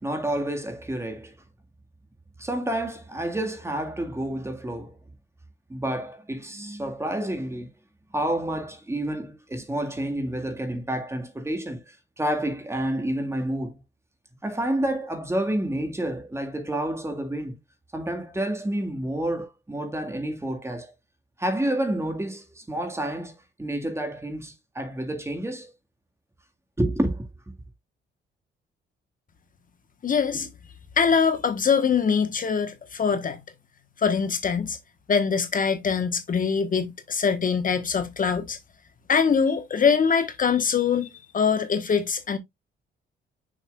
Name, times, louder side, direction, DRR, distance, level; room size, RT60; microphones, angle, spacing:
voice 1, 0.0-1.3 2.4-5.0 5.7-7.7 8.1-13.8 14.4-17.6 17.9-20.9 21.4-23.3 23.6-25.7 26.8-27.3, right 1 dB, 15° right, 1.8 m, -29 dB
voice 2, 30.0-30.5 31.0-33.4 34.0-34.8 35.1-38.6 39.1-42.4, left 6 dB, 45° left, 1.2 m, -23 dB
6.5 x 6.4 x 2.4 m
cardioid pair, 90°, 20 cm